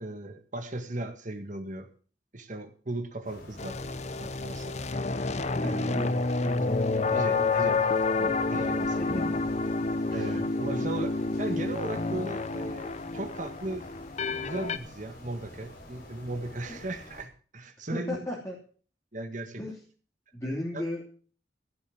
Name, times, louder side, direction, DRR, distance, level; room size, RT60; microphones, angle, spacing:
voice 1, 0.0-1.9 2.3-3.8 4.2-4.8 5.6-6.1 6.4-6.8 7.1-7.8 8.2-9.2 10.1-13.9 14.3-18.3 19.1-19.6 20.7-20.8, right 2 dB, 45° right, 7 dB, 1.7 m, -37 dB
sound 1, 3.2-17.2, left 1 dB, 55° left, 5.5 m, -48 dB
sound 2, 3.6-14.8, left 3 dB, 40° left, 0.7 m, -29 dB
voice 2, 5.6-7.5 8.9-9.2 10.0-10.4 10.7-10.8 16.7-16.8 17.9-18.6 19.6-19.8 20.3-21.0, left 1 dB, 15° left, -3 dB, 3.0 m, -36 dB
16.0 x 7.1 x 7.8 m, 0.42 s
head